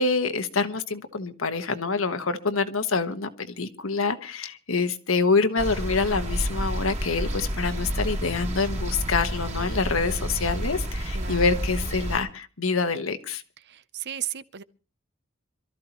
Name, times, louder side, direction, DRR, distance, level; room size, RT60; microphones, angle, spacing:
voice 1, 0.0-13.4, left 4 dB, 80° left, 1.4 m, -26 dB
sound 1, 5.6-12.2, equal, 35° right, 2.5 m, -30 dB
voice 2, 11.1-11.5 13.7-14.6, right 10 dB, 55° right, 0.7 m, -35 dB
26.5 x 13.5 x 3.0 m
head